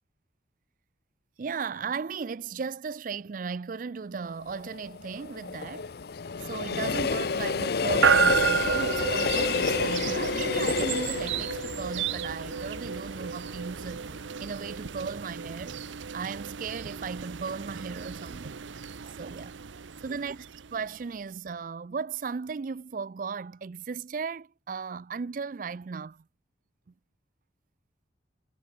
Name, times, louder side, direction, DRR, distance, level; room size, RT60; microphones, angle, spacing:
voice 1, 1.4-5.9 6.4-14.1 14.4-15.8 16.1-18.6 19.0-19.6 20.0-20.5 20.7-26.2, right 5 dB, 45° right, 0.4 m, -36 dB
Train, 4.4-13.5 13.8-13.9, left 5 dB, 55° left, 0.5 m, -30 dB
sound 1, 8.0-21.0, right 6 dB, 80° right, 0.7 m, -31 dB
head